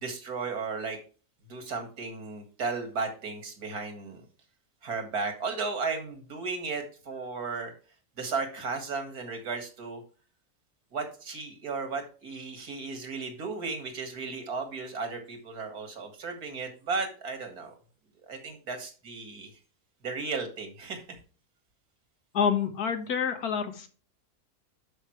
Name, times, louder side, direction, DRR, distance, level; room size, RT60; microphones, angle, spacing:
voice 1, 0.0-1.0 1.5-4.2 4.8-7.7 8.2-10.0 10.9-17.7 18.3-19.5 20.0-21.0, right 4 dB, 90° right, 5 dB, 2.4 m, -35 dB
voice 2, 22.3-23.9, left 7 dB, 85° left, 8 dB, 1.8 m, -27 dB
11.0 x 5.3 x 3.2 m, 0.37 s
omnidirectional pair, 1.6 m